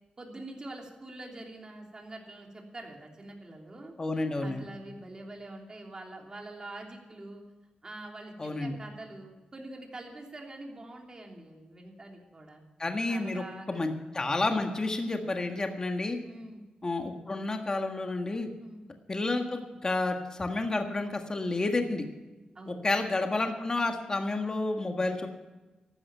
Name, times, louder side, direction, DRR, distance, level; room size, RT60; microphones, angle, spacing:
voice 1, 0.2-3.9 4.4-7.4 7.8-12.6 13.1-13.9 16.2-16.6 18.6-18.8 22.5-22.8, right 2 dB, 30° right, 0 dB, 3.1 m, -45 dB
voice 2, 4.0-4.6 8.4-8.8 12.8-13.4 13.7-16.2 16.8-18.5 19.1-22.0 22.7-25.3, left 2 dB, 30° left, 4 dB, 1.6 m, -30 dB
14.0 x 12.5 x 5.7 m, 1.2 s
wide cardioid pair, 120°, 2 cm